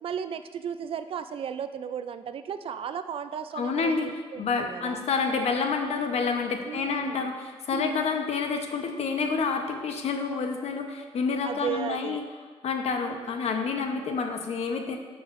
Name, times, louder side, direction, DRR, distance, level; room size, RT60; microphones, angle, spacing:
voice 1, 0.0-5.0 6.7-7.3 7.7-7.9 11.4-12.2 13.0-13.3, right 8 dB, 55° right, 10 dB, 0.3 m, -35 dB
voice 2, 3.5-4.1 4.4-12.2 12.6-15.0, left 5 dB, 70° left, 4 dB, 0.9 m, -28 dB
12.5 x 5.7 x 2.6 m, 1.4 s
wide cardioid pair, 155°, 11 cm